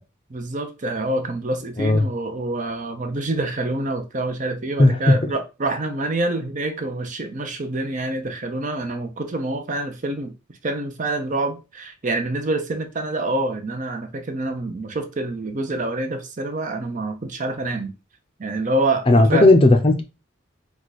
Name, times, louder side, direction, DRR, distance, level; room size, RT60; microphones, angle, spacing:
voice 1, 0.3-10.3 10.6-17.9 18.4-19.5, right 2 dB, 40° right, 0.7 m, -26 dB
voice 2, 4.8-5.3 19.1-20.0, left 2 dB, 30° left, 0.6 m, -15 dB
4.7 x 2.3 x 4.1 m
head